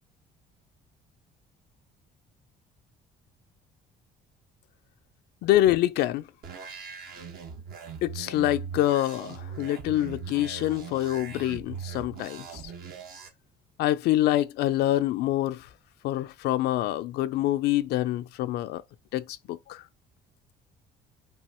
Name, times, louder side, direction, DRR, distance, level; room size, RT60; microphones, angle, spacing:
voice 1, 5.4-6.2 8.0-12.6 13.8-15.7 16.0-18.8 19.1-19.8, left 14 dB, 75° left, 0.4 m, -26 dB
Reese Bass, 6.4-13.3, right 6 dB, 65° right, 1.4 m, -40 dB
5.6 x 2.8 x 2.9 m
cardioid pair, 110°, 17 cm